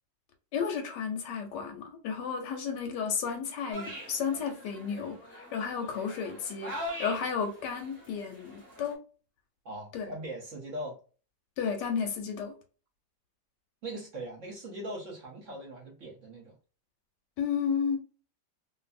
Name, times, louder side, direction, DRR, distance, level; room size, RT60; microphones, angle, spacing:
voice 1, 0.5-9.0 9.9-10.1 11.6-12.5 17.4-18.0, left 6 dB, 80° left, 1.2 m, -33 dB
sound 1, 3.7-8.9, equal, 15° right, 0.7 m, -43 dB
voice 2, 9.6-11.0 13.8-16.6, right 1 dB, 55° right, 0.9 m, -40 dB
2.6 x 2.5 x 2.4 m
omnidirectional pair, 2.0 m